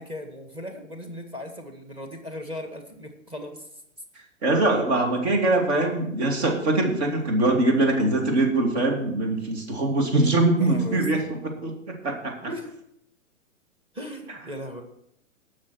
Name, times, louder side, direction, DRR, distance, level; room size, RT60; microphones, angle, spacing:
voice 1, 0.0-3.7 10.6-11.2 12.4-12.7 13.9-14.8, left 1 dB, 15° right, 5 dB, 1.6 m, -37 dB
voice 2, 4.4-11.2 11.6-11.7 12.0-12.3, right 2 dB, 55° right, 1 dB, 2.9 m, -22 dB
18.5 x 6.4 x 4.5 m, 0.72 s
figure-of-eight pair, 110°, 40 cm